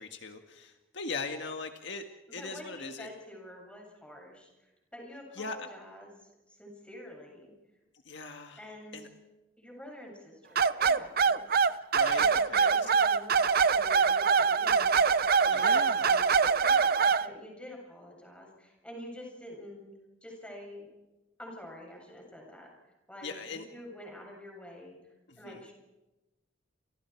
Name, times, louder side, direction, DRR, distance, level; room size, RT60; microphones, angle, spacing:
voice 1, 0.0-2.0 2.3-3.1 5.3-5.7 8.0-8.6 8.9-9.1 11.9-13.0 15.5-16.2 23.2-23.6 25.3-25.6, left 3 dB, 60° left, 5 dB, 1.8 m, -40 dB
voice 2, 2.3-7.5 8.6-9.1 9.6-11.5 12.1-19.9 20.2-20.9 21.4-22.7 23.1-25.0 25.4-25.7, left 1 dB, 5° left, 0 dB, 7.7 m, -48 dB
sound 1, 10.6-17.3, right 5 dB, 50° right, 0.7 m, -24 dB
30.0 x 27.5 x 4.7 m, 1.0 s
head